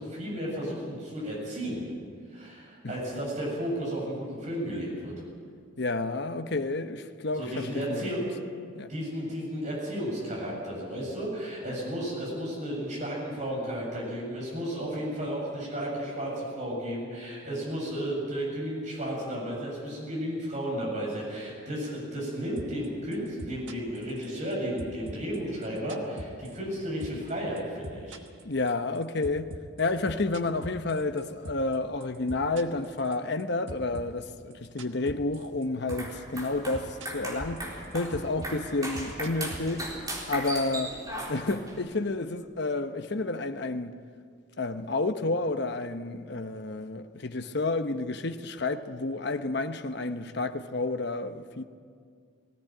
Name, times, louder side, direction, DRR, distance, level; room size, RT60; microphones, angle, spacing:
voice 1, 0.0-1.8 2.3-5.1 7.4-8.2 8.9-28.2, equal, 40° right, 7.9 m, -33 dB
voice 2, 5.8-8.1 8.7-8.9 28.4-29.5 29.8-37.6 37.9-39.9 40.3-41.0 41.3-43.9 44.6-51.6, left 2 dB, 60° left, 1.0 m, -30 dB
sound 1, 22.6-22.9 23.1-24.5 24.8-26.8 27.0-27.3 27.6-31.8 32.0-33.4 33.7-35.6 35.9-36.2 36.4-37.3 37.6-40.2, right 1 dB, 70° right, 1.3 m, -41 dB
sound 2, 35.8-41.8, right 1 dB, 20° right, 4.0 m, -38 dB
20.0 x 16.5 x 9.1 m
head